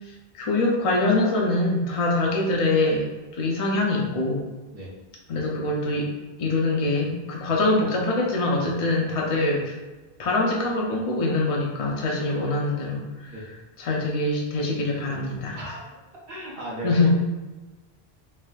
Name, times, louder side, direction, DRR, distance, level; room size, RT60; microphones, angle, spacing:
voice 1, 0.0-3.0 3.3-4.4 5.3-6.1 6.4-9.8 10.2-13.3 13.8-15.6 16.8-17.1, left 2 dB, 50° left, -2 dB, 0.4 m, -24 dB
voice 2, 15.5-16.0 16.3-17.1, right 1 dB, 65° right, -4 dB, 1.0 m, -35 dB
3.3 x 2.5 x 2.3 m, 1.2 s
omnidirectional pair, 1.1 m